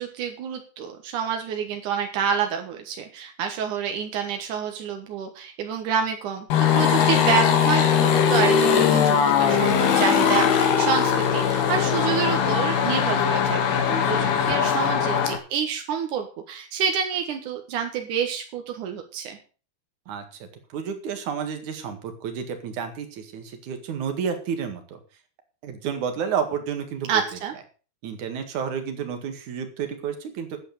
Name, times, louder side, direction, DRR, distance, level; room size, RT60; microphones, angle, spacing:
voice 1, 0.0-19.4 27.1-27.5, right 7 dB, 70° right, 4 dB, 1.9 m, -28 dB
sound 1, 6.5-15.4, left 7 dB, 60° left, 3.6 m, -20 dB
voice 2, 20.7-25.0 25.6-27.2 28.0-30.6, right 7 dB, 55° right, 6 dB, 2.5 m, -31 dB
11.5 x 9.1 x 6.6 m, 0.37 s
omnidirectional pair, 5.8 m